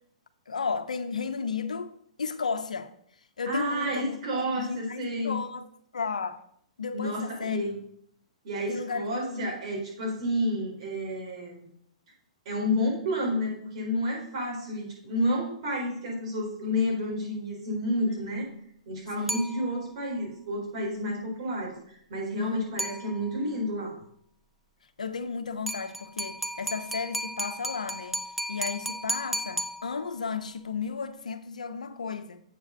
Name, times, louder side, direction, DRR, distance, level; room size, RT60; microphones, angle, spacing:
voice 1, 0.5-2.9 3.4-5.6 5.9-6.4 6.8-7.6 8.7-9.4 18.2-18.6 19.2-19.4 22.3-22.6 25.0-28.2 28.5-32.4, left 5 dB, 90° left, 0.7 m, -34 dB
voice 2, 3.5-5.4 6.9-7.8 8.4-11.6 12.5-18.5 18.9-24.0, equal, 55° right, 3.7 m, -30 dB
sound 1, 19.3-20.1 22.8-23.5 25.7-30.3, right 1 dB, ahead, 0.6 m, -35 dB
7.8 x 4.8 x 5.4 m
hypercardioid pair, 125°, 4 cm